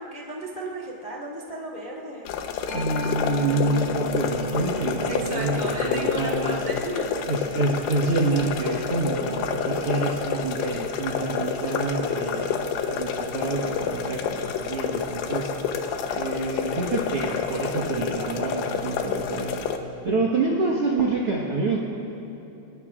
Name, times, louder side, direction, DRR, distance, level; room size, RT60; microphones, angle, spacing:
voice 1, 0.0-2.3 5.1-7.1, right 1 dB, 35° left, -4 dB, 0.7 m, -34 dB
sound 1, 2.3-19.8, left 6 dB, 85° left, 3.0 m, -29 dB
Mallet percussion, 2.7-10.0, right 1 dB, 70° left, 5.5 m, -38 dB
voice 2, 2.7-6.5 7.3-15.5 16.1-19.6 20.0-21.8, right 3 dB, 65° right, -4 dB, 1.4 m, -27 dB
27.5 x 21.5 x 2.4 m, 2.9 s
omnidirectional pair, 4.6 m